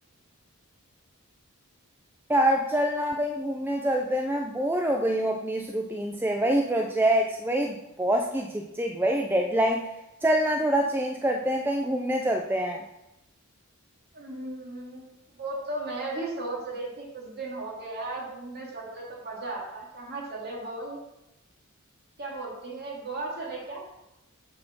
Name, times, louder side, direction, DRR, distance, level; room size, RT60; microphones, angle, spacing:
voice 1, 2.3-9.9 10.2-12.8, right 1 dB, 10° right, 2 dB, 0.3 m, -25 dB
voice 2, 14.1-15.0 15.3-21.0 22.2-23.8, right 2 dB, 45° right, -3 dB, 2.1 m, -36 dB
7.6 x 4.2 x 5.8 m, 0.91 s
head